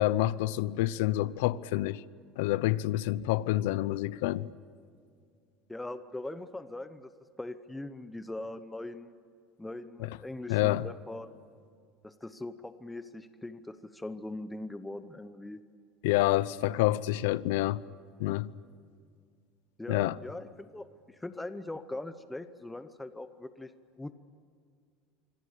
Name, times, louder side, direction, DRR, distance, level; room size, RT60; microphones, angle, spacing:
voice 1, 0.0-2.0 2.4-4.5 10.0-10.2 10.5-10.9 16.0-17.8 18.2-18.5 19.9-20.2, left 16 dB, 85° left, 0.8 m, -28 dB
voice 2, 5.7-7.1 7.4-9.2 9.6-11.4 12.0-15.6 16.7-16.8 19.8-23.7 24.0-24.1, left 2 dB, 5° left, 0.9 m, -41 dB
26.5 x 25.0 x 8.3 m
cardioid pair, 155°, 0 cm